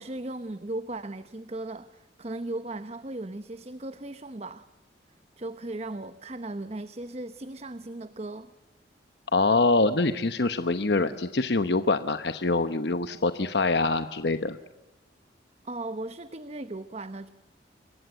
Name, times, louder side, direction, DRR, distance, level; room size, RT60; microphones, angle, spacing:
voice 1, 0.0-4.7 5.4-8.5 15.6-17.3, right 2 dB, 35° right, 12 dB, 0.9 m, -37 dB
voice 2, 9.3-14.6, left 3 dB, 65° left, 10 dB, 1.0 m, -24 dB
28.0 x 22.5 x 8.0 m, 1.0 s
head